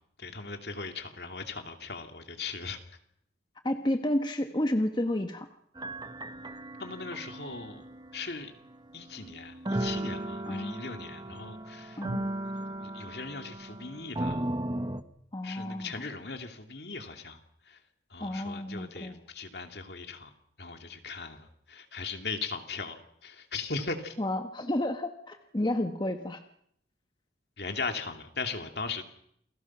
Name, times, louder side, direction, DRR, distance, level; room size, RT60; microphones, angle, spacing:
voice 1, 0.2-2.8 6.8-7.9 8.1-8.5 8.9-12.0 12.8-14.5 15.4-17.4 17.7-17.8 18.1-20.3 20.6-23.0 23.2-24.2 27.6-29.0, left 4 dB, 65° left, 5 dB, 2.6 m, -38 dB
voice 2, 3.6-5.5 10.5-10.8 12.0-12.2 15.3-15.9 18.2-19.2 24.2-26.4, left 1 dB, 25° left, 6 dB, 1.2 m, -31 dB
sound 1, 5.8-15.0, right 1 dB, 25° right, 1.1 m, -36 dB
29.0 x 20.0 x 6.1 m, 0.71 s
head